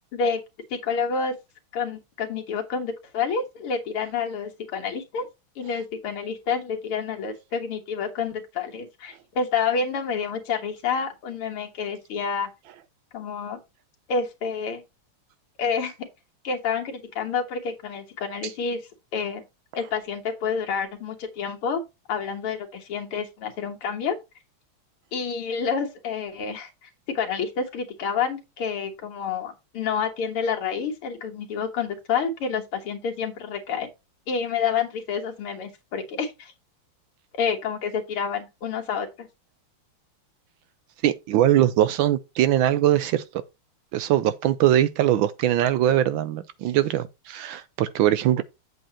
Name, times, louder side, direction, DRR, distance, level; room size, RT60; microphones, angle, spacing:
voice 1, 0.7-1.3 1.7-5.3 5.6-12.5 13.1-13.6 14.1-14.8 15.6-16.1 16.4-18.8 19.1-19.5 19.7-21.8 22.1-24.2 25.1-33.9 34.3-36.5 37.4-39.3, left 6 dB, 80° left, 2.4 m, -28 dB
voice 2, 41.0-43.4 43.9-48.4, right 12 dB, 75° right, 1.3 m, -21 dB
8.0 x 7.8 x 2.8 m
omnidirectional pair, 2.4 m